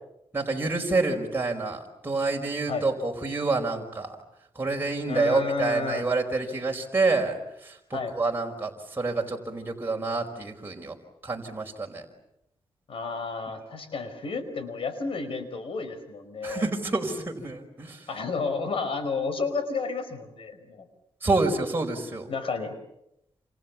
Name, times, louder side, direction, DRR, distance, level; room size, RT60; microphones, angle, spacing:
voice 1, 0.3-4.2 4.5-11.0 11.2-12.0 16.4-18.1 21.2-22.3, right 3 dB, 25° right, 0 dB, 5.0 m, -28 dB
voice 2, 5.1-6.1 7.9-8.1 12.9-16.7 18.1-20.9 22.3-22.8, left 4 dB, 70° left, 10 dB, 5.1 m, -31 dB
29.0 x 28.0 x 7.3 m, 0.82 s
cardioid pair, 95°, 10 cm